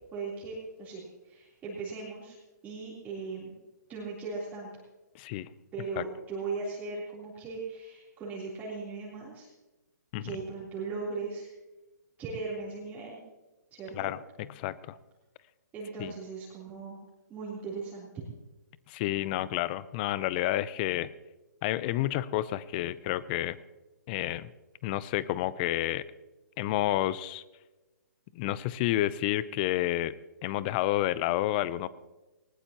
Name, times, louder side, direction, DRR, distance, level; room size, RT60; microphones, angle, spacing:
voice 1, 0.1-2.4 2.6-3.5 3.9-4.7 5.7-9.5 10.2-11.5 12.2-13.2 13.7-14.1 15.7-17.0 17.3-18.1, right 4 dB, 15° right, -7 dB, 3.5 m, -38 dB
voice 2, 5.1-5.5 6.0-6.1 10.1-10.3 13.9-14.2 14.5-15.0 16.0-16.1 18.9-21.1 21.6-23.6 24.1-24.5 24.8-26.0 26.6-27.4 28.4-30.1 30.4-31.9, left 14 dB, 30° left, 18 dB, 0.6 m, -30 dB
19.5 x 19.0 x 3.0 m, 1.1 s
hypercardioid pair, 140°, 10 cm